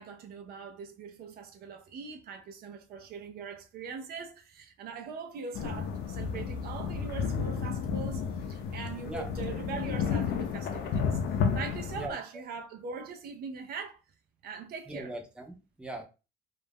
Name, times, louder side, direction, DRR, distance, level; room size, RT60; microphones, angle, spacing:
voice 1, 0.0-11.2 11.5-14.0 14.4-15.1, right 5 dB, 65° right, 0.6 m, -41 dB
sound 1, 5.5-12.1, left 6 dB, 75° left, 0.6 m, -32 dB
voice 2, 14.9-16.0, right 1 dB, 5° right, 0.6 m, -40 dB
2.4 x 2.1 x 3.4 m
cardioid pair, 110°, 17 cm